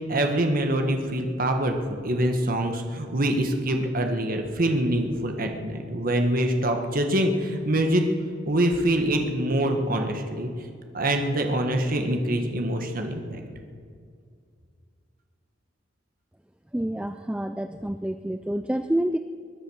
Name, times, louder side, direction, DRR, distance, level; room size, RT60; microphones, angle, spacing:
voice 1, 0.1-1.7 2.0-8.0 8.5-10.5 10.9-13.4, right 1 dB, 45° right, 4 dB, 1.5 m, -25 dB
voice 2, 16.7-19.2, right 1 dB, 5° right, 9 dB, 0.4 m, -28 dB
21.0 x 10.5 x 6.3 m, 2.2 s
head